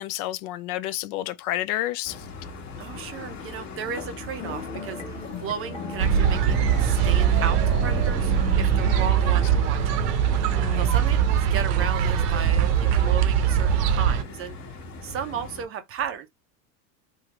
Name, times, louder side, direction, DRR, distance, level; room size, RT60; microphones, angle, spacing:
voice 1, 0.0-2.2 9.0-9.1 10.5-10.9, left 14 dB, 65° left, 0.5 m, -30 dB
sound 1, 2.0-15.6, left 2 dB, 35° left, 1.0 m, -37 dB
voice 2, 2.8-10.0 10.8-14.6 15.0-16.3, right 8 dB, 30° right, 0.4 m, -34 dB
sound 2, 4.4-10.7, left 5 dB, 15° left, 0.8 m, -38 dB
sound 3, 6.0-14.2, right 9 dB, 75° right, 0.8 m, -22 dB
3.6 x 2.0 x 2.9 m
supercardioid pair, 110°, 49 cm